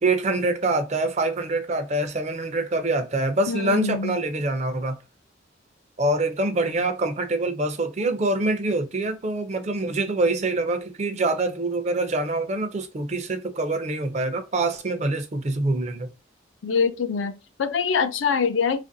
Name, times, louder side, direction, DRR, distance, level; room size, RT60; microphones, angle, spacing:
voice 1, 0.0-5.0 6.0-16.1, right 2 dB, 35° right, 0.4 m, -25 dB
voice 2, 3.5-4.2 16.6-18.8, left 5 dB, 90° left, 0.4 m, -24 dB
2.8 x 2.5 x 2.6 m
head